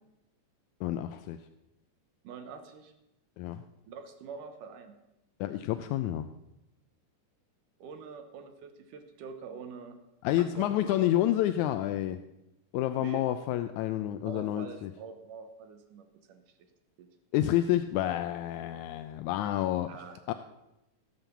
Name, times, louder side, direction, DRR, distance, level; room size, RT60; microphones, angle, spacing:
voice 1, 0.8-1.4 3.4-3.6 5.4-6.3 10.2-12.2 12.7-14.9 17.3-20.3, left 13 dB, 80° left, 10 dB, 1.8 m, -29 dB
voice 2, 2.2-2.9 3.9-4.9 7.8-10.0 10.4-11.1 13.0-13.3 14.2-16.4 17.0-17.1 19.9-20.3, right 6 dB, 75° right, 7 dB, 2.6 m, -45 dB
17.5 x 7.5 x 7.1 m, 0.92 s
omnidirectional pair, 3.8 m